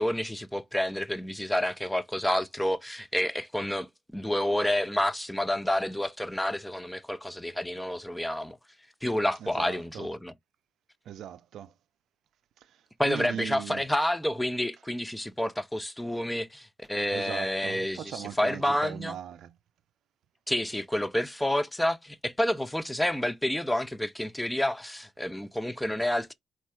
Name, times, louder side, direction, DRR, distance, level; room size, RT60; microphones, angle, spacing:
voice 1, 0.0-8.6 9.0-10.3 13.0-19.1 20.5-26.3, left 1 dB, 5° left, 0.4 m, -29 dB
voice 2, 9.4-10.1 11.0-11.7 12.6-13.8 17.1-19.6, right 10 dB, 70° right, 0.4 m, -39 dB
4.5 x 2.4 x 4.2 m
cardioid pair, 150°, 0 cm